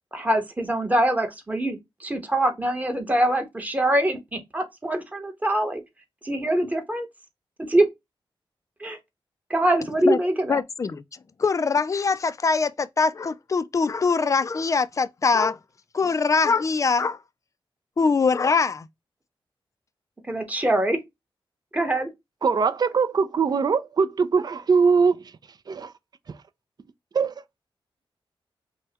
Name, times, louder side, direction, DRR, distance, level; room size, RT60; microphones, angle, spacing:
voice 1, 0.1-5.8 6.2-7.1 7.7-7.8 8.8-9.0 9.5-10.6 20.3-21.0 21.7-22.1, right 1 dB, 15° right, 1.1 m, -24 dB
voice 2, 10.5-11.0 11.4-15.6 15.9-17.2 18.0-18.9, left 4 dB, 35° left, 0.3 m, -22 dB
voice 3, 22.4-25.2 25.7-25.9 27.1-27.3, right 5 dB, 45° right, 0.4 m, -21 dB
5.4 x 2.2 x 2.8 m
wide cardioid pair, 110°, 9 cm